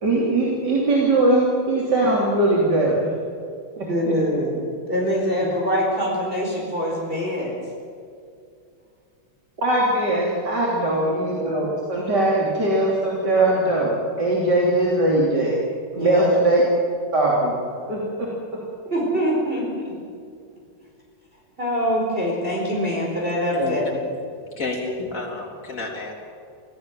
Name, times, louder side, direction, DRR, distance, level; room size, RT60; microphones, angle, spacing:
voice 1, 0.0-3.1 3.8-4.1 9.6-15.6 15.9-16.6 17.1-17.5 17.9-18.3, right 2 dB, 50° right, -4 dB, 3.7 m, -20 dB
voice 2, 3.9-4.6 4.9-7.5 10.7-11.1 15.9-16.3 18.8-19.9 21.6-24.0, equal, 25° right, -3 dB, 4.9 m, -24 dB
voice 3, 23.5-23.9 24.5-26.1, left 3 dB, 40° left, -2 dB, 4.1 m, -30 dB
25.0 x 16.5 x 7.6 m, 2.4 s
omnidirectional pair, 2.3 m